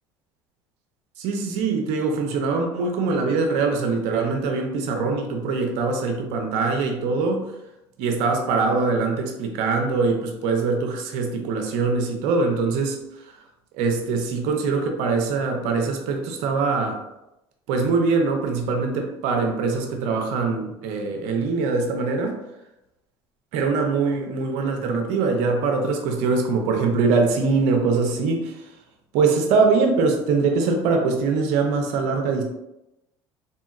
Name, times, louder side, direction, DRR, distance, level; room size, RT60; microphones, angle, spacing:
voice 1, 1.2-7.5 8.0-13.0 13.8-17.0 17.7-22.4 23.5-28.5 29.1-32.4, right 4 dB, 70° right, 3 dB, 0.6 m, -23 dB
2.8 x 2.7 x 2.4 m, 0.91 s
hypercardioid pair, 75°, 13 cm